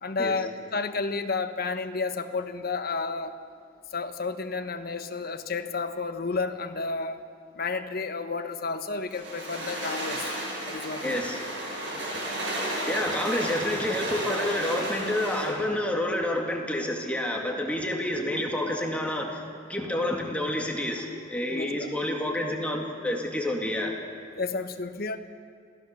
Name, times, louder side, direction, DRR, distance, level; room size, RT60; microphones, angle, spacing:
voice 1, 0.0-3.4 3.9-7.2 7.5-10.3 10.7-11.2 21.5-21.9 24.4-25.2, left 4 dB, 55° left, 8 dB, 1.2 m, -31 dB
sound 1, 9.1-15.6, right 1 dB, 70° right, 7.6 m, -33 dB
voice 2, 11.0-11.4 11.9-12.2 12.9-19.4 19.7-23.9, left 1 dB, 5° left, 0 dB, 2.1 m, -29 dB
26.0 x 17.0 x 6.7 m, 2.2 s
head